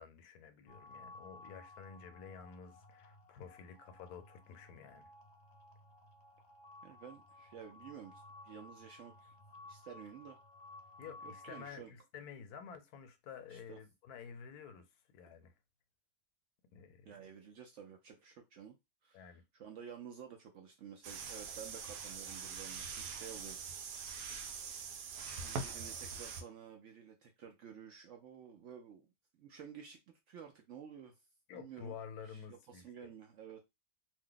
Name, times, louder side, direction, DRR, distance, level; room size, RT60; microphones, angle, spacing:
voice 1, 0.0-5.1 11.0-15.5 16.7-17.1 19.1-19.4 31.5-33.1, left 7 dB, 80° left, 1.1 m, -51 dB
sound 1, 0.7-11.7, left 2 dB, 55° left, 0.8 m, -56 dB
voice 2, 6.8-9.3 9.7-10.4 11.2-11.9 13.5-13.8 17.0-18.8 19.0-19.3 19.5-23.6 25.2-30.0 30.3-31.2 31.5-32.0 32.3-32.4 32.7-33.6, right 8 dB, 70° right, 0.7 m, -52 dB
sound 2, 21.0-26.4, right 5 dB, 90° right, 1.1 m, -43 dB
2.8 x 2.1 x 3.7 m
omnidirectional pair, 1.6 m